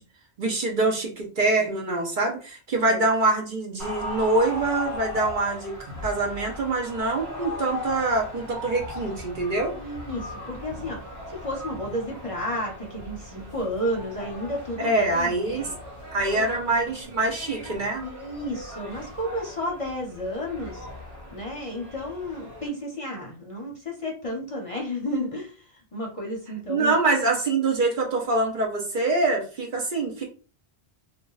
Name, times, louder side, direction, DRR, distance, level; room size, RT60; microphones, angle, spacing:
voice 1, 0.4-5.7 6.0-9.8 14.8-15.7 16.1-18.0 26.7-30.2, right 2 dB, 50° right, 1 dB, 0.8 m, -25 dB
sound 1, 3.8-22.7, left 1 dB, 70° right, 1.2 m, -38 dB
voice 2, 9.8-11.0 11.3-15.7 16.3-16.5 18.0-20.9 21.3-26.9, equal, 35° left, -1 dB, 0.7 m, -32 dB
2.7 x 2.3 x 3.8 m, 0.36 s
omnidirectional pair, 1.1 m